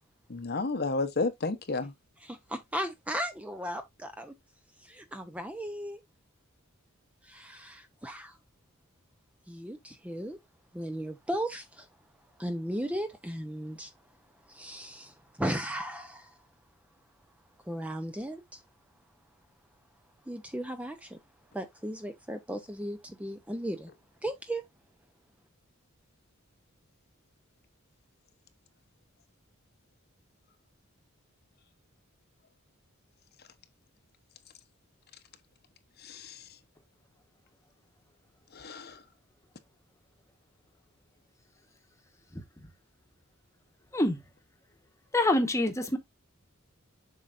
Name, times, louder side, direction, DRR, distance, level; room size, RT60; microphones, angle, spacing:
voice 1, 0.3-1.9 36.0-36.4 38.5-39.0, left 3 dB, 50° left, 0.9 m, -32 dB
voice 2, 2.2-4.3 4.8-6.0 7.2-8.4 9.5-10.4 10.7-11.9 12.4-13.9 14.5-16.4 17.7-18.6 20.3-21.2 21.5-23.9 24.2-24.6, right 1 dB, 5° right, 0.6 m, -36 dB
voice 3, 45.1-46.0, left 1 dB, 15° left, 1.1 m, -25 dB
7.6 x 5.5 x 2.5 m
head